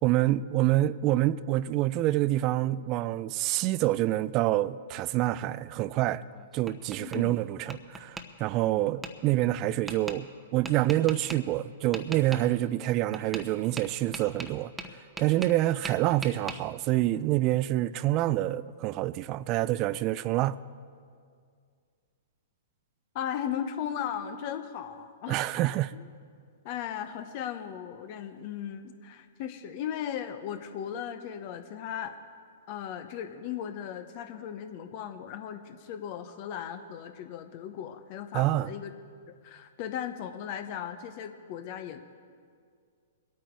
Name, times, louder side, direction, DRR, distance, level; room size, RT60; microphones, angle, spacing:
voice 1, 0.0-6.2 6.5-14.7 15.2-20.6 25.3-25.9 38.3-38.7, right 15 dB, 35° right, 0.4 m, -27 dB
Tap, 6.2-7.2 7.7-8.3 9.0-9.1 9.9-10.2 10.6-11.4 11.9-12.4 13.1-13.5 13.8-15.6 15.8-16.6, right 2 dB, 10° right, 0.9 m, -39 dB
voice 2, 7.0-7.4 23.1-25.5 25.9-26.0 26.6-32.2 32.7-38.9 39.4-42.0, left 9 dB, 45° left, 1.0 m, -37 dB
23.0 x 8.9 x 4.7 m
hypercardioid pair, 125°, 0 cm